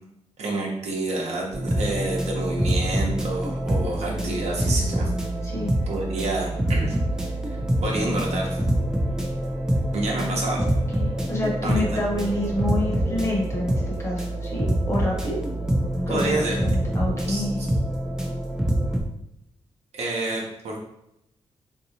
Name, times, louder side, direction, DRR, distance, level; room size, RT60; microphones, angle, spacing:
voice 1, 0.4-5.1 5.9-7.0 7.5-8.6 9.9-10.6 11.6-11.8 16.1-16.6 17.3-17.7 19.9-20.8, right 2 dB, 70° right, -1 dB, 0.8 m, -28 dB
sound 1, 1.5-19.0, right 1 dB, 5° right, 0.4 m, -25 dB
voice 2, 10.1-10.6 10.9-15.4 16.1-17.6, left 1 dB, 25° left, -2 dB, 0.9 m, -28 dB
3.5 x 2.7 x 2.8 m, 0.82 s
wide cardioid pair, 145°, 12 cm